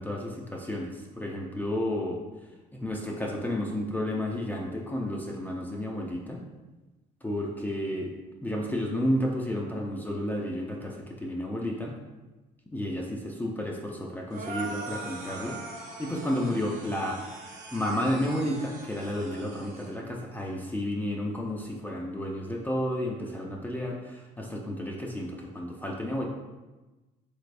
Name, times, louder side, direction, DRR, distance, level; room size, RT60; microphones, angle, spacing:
voice 1, 0.0-2.2 2.7-6.4 7.2-8.2 8.4-11.9 12.7-17.2 17.7-26.3, left 1 dB, 10° left, -1 dB, 0.4 m, -31 dB
sound 1, 14.3-19.9, right 2 dB, 50° right, 0.9 m, -41 dB
3.9 x 3.3 x 2.5 m, 1.1 s
cardioid pair, 110°, 17 cm